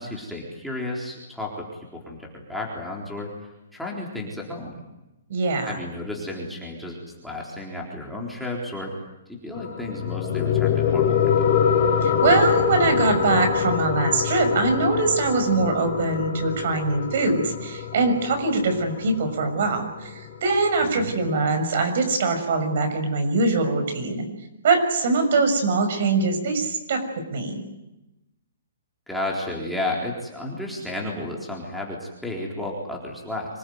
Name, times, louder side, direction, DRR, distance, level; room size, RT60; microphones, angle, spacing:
voice 1, 0.0-4.8 5.7-8.9 9.3-11.5 20.8-21.1 29.1-33.6, left 2 dB, ahead, -3 dB, 4.0 m, -33 dB
voice 2, 5.3-5.8 12.0-24.3 24.6-27.0 27.3-27.6, right 3 dB, 50° right, 6 dB, 6.4 m, -22 dB
sound 1, 9.5-20.6, left 7 dB, 35° left, 5.1 m, -24 dB
26.0 x 20.0 x 9.5 m, 0.95 s
hypercardioid pair, 165°, 0 cm